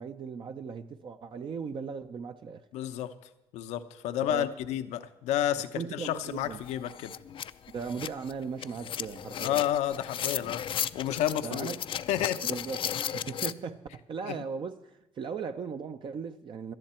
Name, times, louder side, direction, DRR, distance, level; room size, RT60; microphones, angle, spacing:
voice 1, 0.0-2.6 4.3-4.5 5.8-6.6 7.7-9.6 11.4-11.8 12.4-16.7, right 6 dB, 45° right, 0.7 m, -38 dB
voice 2, 2.7-3.1 3.5-7.1 9.4-10.6 10.9-11.7 12.1-12.4 14.3-14.4, left 11 dB, 85° left, 0.8 m, -30 dB
sound 1, 6.2-6.3 6.6-13.5, left 9 dB, 50° left, 0.5 m, -35 dB
17.5 x 12.5 x 4.4 m
cardioid pair, 95°, 11 cm